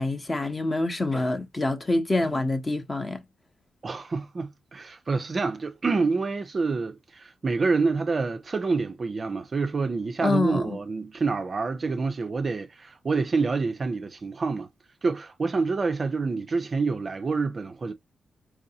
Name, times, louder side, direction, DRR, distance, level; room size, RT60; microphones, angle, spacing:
voice 1, 0.0-3.2 10.2-10.8, left 2 dB, 20° left, 0.7 m, -26 dB
voice 2, 3.8-14.7 15.0-17.9, right 4 dB, 30° right, 0.5 m, -27 dB
4.7 x 2.6 x 2.7 m
wide cardioid pair, 160°, 0 cm